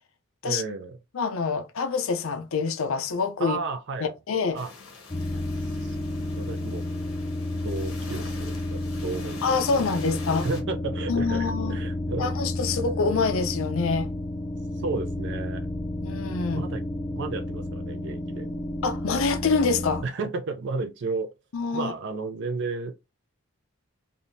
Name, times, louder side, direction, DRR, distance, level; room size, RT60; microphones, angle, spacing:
voice 1, 0.4-1.0 3.4-4.2 4.5-4.7 5.8-6.0 6.3-6.9 7.5-9.8 10.4-12.3 14.8-15.7 16.5-18.5 20.0-21.3 21.7-22.9, right 3 dB, 55° right, 0.5 m, -33 dB
voice 2, 1.1-3.6 4.0-4.6 9.4-10.5 11.1-11.8 12.2-14.1 16.0-16.6 18.8-20.0 21.5-21.9, left 4 dB, 65° left, 0.5 m, -26 dB
sound 1, 4.5-10.6, left 4 dB, 85° left, 1.0 m, -45 dB
sound 2, 5.1-20.0, left 1 dB, 20° left, 0.5 m, -31 dB
3.4 x 2.7 x 2.6 m
head